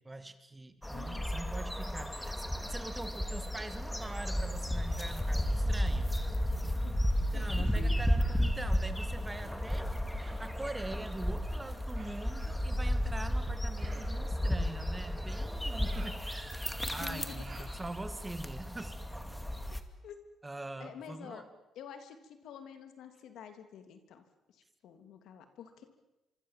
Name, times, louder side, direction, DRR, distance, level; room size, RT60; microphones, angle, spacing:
voice 1, 0.0-6.2 7.2-18.9 20.4-21.5, right 2 dB, 15° right, 10 dB, 2.2 m, -43 dB
sound 1, 0.8-19.8, equal, 5° left, 2.4 m, -33 dB
voice 2, 0.9-1.4 6.8-7.0 7.3-8.0 9.4-9.5 16.8-17.5 20.0-20.1 20.8-21.4 21.7-25.8, left 8 dB, 80° left, 7 dB, 3.0 m, -48 dB
Human voice, 10.2-10.6 12.0-12.4 13.8-14.4 15.8-16.7 17.5-18.0, right 4 dB, 40° right, 6.0 m, -54 dB
26.0 x 24.5 x 7.7 m, 0.99 s
cardioid pair, 90°, 0 cm